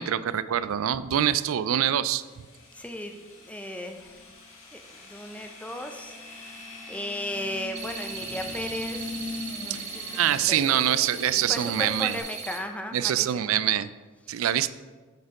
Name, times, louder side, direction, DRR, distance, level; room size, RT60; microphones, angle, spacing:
voice 1, 0.0-2.2 9.7-9.8 10.1-12.2 12.9-13.9 14.3-14.7, right 10 dB, 75° right, 15 dB, 0.3 m, -25 dB
sound 1, 2.1-12.2, left 2 dB, 70° left, 1.8 m, -41 dB
voice 2, 2.7-4.2 4.7-10.0 10.5-10.6 11.5-13.5, left 1 dB, 5° left, 4 dB, 0.5 m, -36 dB
sound 2, 7.8-12.6, right 6 dB, 50° right, 0.9 m, -38 dB
8.1 x 4.4 x 4.8 m, 1.3 s
head